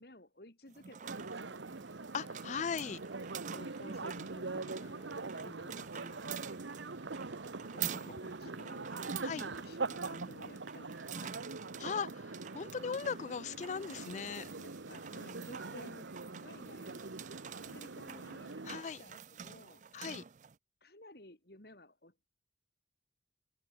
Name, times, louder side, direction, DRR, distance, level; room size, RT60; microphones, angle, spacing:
voice 1, 0.0-1.6 2.4-6.4 7.4-9.0 9.6-11.5 14.5-17.2 17.6-18.6 19.0-19.8 20.8-22.3, left 1 dB, 55° left, 3.4 m, -56 dB
sound 1, 0.7-20.5, right 8 dB, 40° right, 0.5 m, -48 dB
sound 2, 1.0-18.8, right 3 dB, 80° right, 1.1 m, -43 dB
sound 3, 1.5-6.6, equal, ahead, 7.1 m, -75 dB
voice 2, 2.1-3.0 9.2-9.5 11.8-14.5 18.6-19.0 19.9-20.2, left 6 dB, 40° left, 0.3 m, -38 dB
head